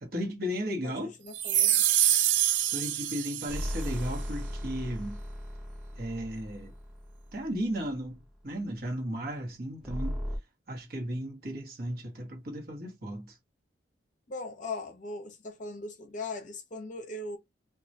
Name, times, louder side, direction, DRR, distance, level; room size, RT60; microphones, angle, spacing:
voice 1, 0.0-1.1 2.7-5.2 5.9-6.7 7.3-10.2 10.7-13.4, equal, 55° right, 0.9 m, -35 dB
voice 2, 0.8-1.8 14.3-17.4, left 3 dB, 45° left, 0.6 m, -39 dB
sound 1, 1.3-3.9, right 12 dB, 80° right, 0.3 m, -26 dB
sound 2, 3.5-8.0 9.8-10.4, equal, ahead, 0.4 m, -37 dB
2.3 x 2.1 x 2.6 m
head